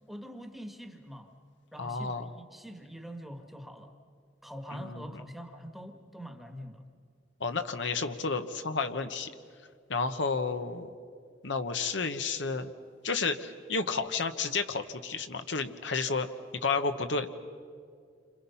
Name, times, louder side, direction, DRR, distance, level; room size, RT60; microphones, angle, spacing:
voice 1, 0.1-1.3 1.7-4.0 4.4-6.8, equal, ahead, 5 dB, 1.5 m, -44 dB
voice 2, 1.8-2.3 4.7-5.1 7.4-9.3 9.9-10.9 11.4-12.7 13.0-16.3 16.6-17.3, left 4 dB, 65° left, 7 dB, 1.1 m, -31 dB
29.5 x 26.0 x 5.7 m, 2.2 s
head